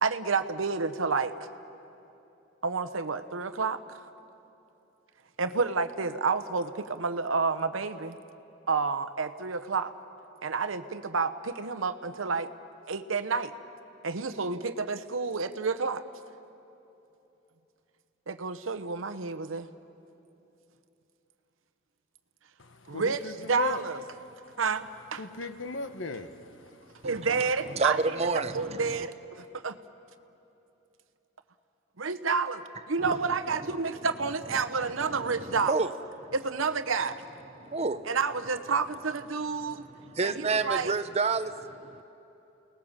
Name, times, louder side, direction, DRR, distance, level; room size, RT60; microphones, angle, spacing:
voice 1, 0.0-1.4 2.6-4.0 5.4-8.2 8.7-9.9 10.4-12.5 12.9-13.5 14.0-16.0 18.3-19.7 22.9-23.2 23.5-24.0 24.6-25.2 27.0-29.8 32.0-35.7 36.3-37.2 38.1-39.9 40.2-41.0, right 4 dB, 85° right, 11 dB, 0.9 m, -30 dB
voice 2, 22.6-23.8 24.3-24.4 25.2-26.9, left 4 dB, 70° left, 9 dB, 1.1 m, -37 dB
voice 3, 27.0-29.1 33.0-34.1 34.5-35.9 36.2-36.3 37.6-38.1 39.6-42.0, right 4 dB, 30° right, 10 dB, 0.7 m, -31 dB
30.0 x 19.5 x 7.4 m, 2.9 s
head